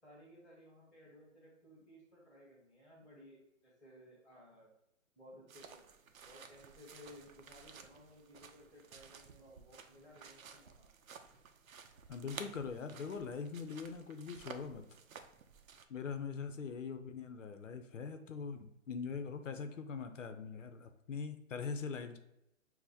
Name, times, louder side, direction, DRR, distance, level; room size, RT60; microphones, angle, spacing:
voice 1, 0.0-4.7 5.2-5.9 6.2-10.7, left 1 dB, ahead, -14 dB, 0.5 m, -58 dB
sound 1, 5.5-15.8, right 6 dB, 85° right, 0.6 m, -54 dB
voice 2, 12.1-14.8 15.9-22.2, left 5 dB, 65° left, 7 dB, 0.6 m, -42 dB
6.2 x 2.1 x 2.7 m, 0.85 s
hypercardioid pair, 170°, 40 cm